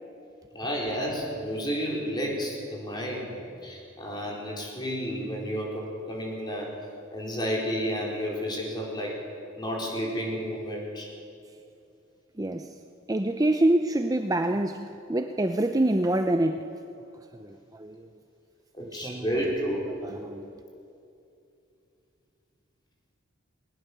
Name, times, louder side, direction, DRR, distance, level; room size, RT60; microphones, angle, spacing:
voice 1, 0.5-6.7 7.1-9.2 9.5-11.1 18.7-19.8 20.2-20.3, equal, 20° left, -2 dB, 4.6 m, -31 dB
voice 2, 12.4-12.7 13.1-16.7 17.3-18.1 18.8-19.5 20.0-20.5, right 1 dB, 20° right, 6 dB, 0.6 m, -26 dB
20.0 x 19.5 x 6.8 m, 2.6 s
head